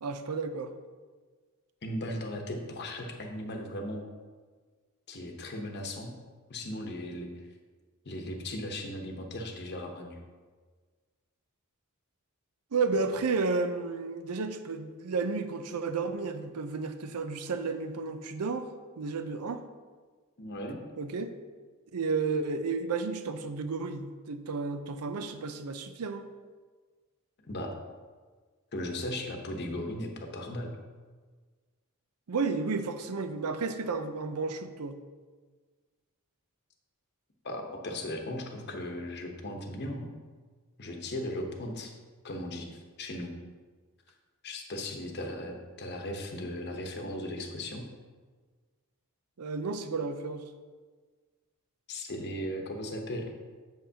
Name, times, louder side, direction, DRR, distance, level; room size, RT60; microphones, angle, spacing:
voice 1, 0.0-0.7 12.7-18.7 19.0-19.6 21.0-21.3 21.9-26.2 32.3-35.0 49.4-50.4, right 4 dB, 80° right, 9 dB, 0.6 m, -32 dB
voice 2, 1.8-4.1 5.1-6.1 6.5-7.5 8.0-10.2 20.4-20.8 27.5-27.8 28.7-30.7 37.4-40.1 40.8-41.9 42.2-43.3 44.1-44.2 44.4-47.9 51.9-53.3, left 1 dB, 50° left, 3 dB, 0.9 m, -37 dB
7.6 x 7.3 x 2.8 m, 1.4 s
head